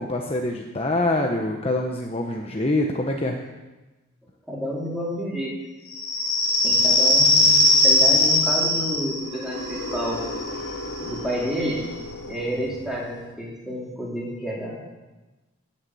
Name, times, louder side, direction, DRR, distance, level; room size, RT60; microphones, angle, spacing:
voice 1, 0.0-3.4, left 2 dB, 30° left, 1 dB, 1.0 m, -25 dB
voice 2, 4.5-5.5 6.6-10.2 10.6-10.7 11.0-11.8 12.2-14.8, equal, ahead, -5 dB, 4.0 m, -30 dB
sound 1, 5.9-13.2, left 1 dB, 80° left, 2.8 m, -22 dB
17.5 x 7.4 x 7.8 m, 1.1 s
head